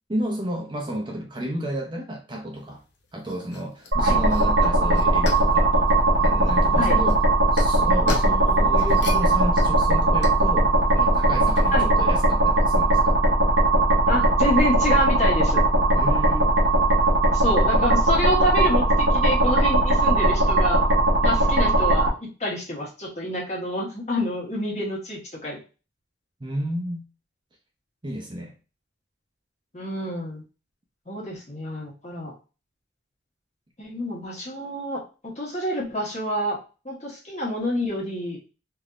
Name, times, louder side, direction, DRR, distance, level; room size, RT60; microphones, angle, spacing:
voice 1, 0.1-2.8 3.1-5.7 6.2-7.2 7.5-13.2 16.0-16.5 26.4-27.0 28.0-28.5, right 1 dB, 25° right, 0 dB, 0.6 m, -32 dB
sound 1, 2.5-11.8, left 3 dB, 65° left, 0.7 m, -38 dB
sound 2, 3.9-22.1, right 2 dB, 65° right, 1.0 m, -19 dB
voice 2, 14.1-15.6 17.3-20.8 21.2-25.6 29.7-30.4 31.1-32.3 33.8-36.6 36.8-38.4, left 1 dB, 35° left, -3 dB, 1.2 m, -28 dB
3.3 x 2.7 x 2.4 m, 0.33 s
head